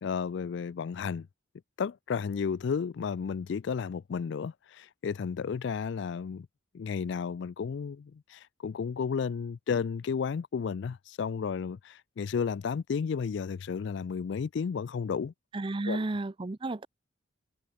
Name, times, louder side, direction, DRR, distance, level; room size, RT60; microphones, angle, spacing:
voice 1, 0.0-1.3 1.8-6.5 6.7-15.3 15.8-16.1, left 6 dB, 60° left, 0.3 m, -33 dB
voice 2, 15.5-16.9, right 2 dB, 25° right, 0.5 m, -32 dB
head